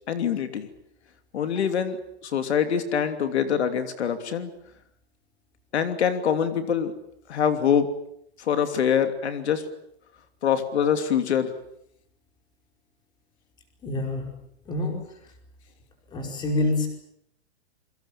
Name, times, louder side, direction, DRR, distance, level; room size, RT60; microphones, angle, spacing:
voice 1, 0.1-0.7 1.3-2.0 2.2-4.5 5.7-6.9 7.3-7.9 8.4-9.6 10.4-11.5, left 8 dB, 75° left, 8 dB, 3.0 m, -24 dB
voice 2, 13.8-14.3 14.7-15.0 16.1-16.9, left 2 dB, 15° left, 3 dB, 5.0 m, -26 dB
28.0 x 23.5 x 7.4 m, 0.74 s
hypercardioid pair, 170°, 33 cm